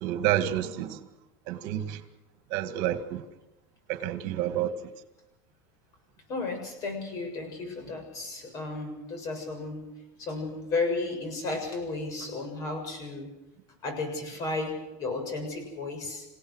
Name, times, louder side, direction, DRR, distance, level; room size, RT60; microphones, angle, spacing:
voice 1, 0.0-1.0 1.5-2.0 2.5-3.2 3.9-4.7, right 12 dB, 55° right, 2.0 m, -29 dB
voice 2, 6.3-9.8 10.2-13.3 13.8-16.3, left 3 dB, 40° left, 7.3 m, -33 dB
28.0 x 17.0 x 6.5 m
supercardioid pair, 145°, 9 cm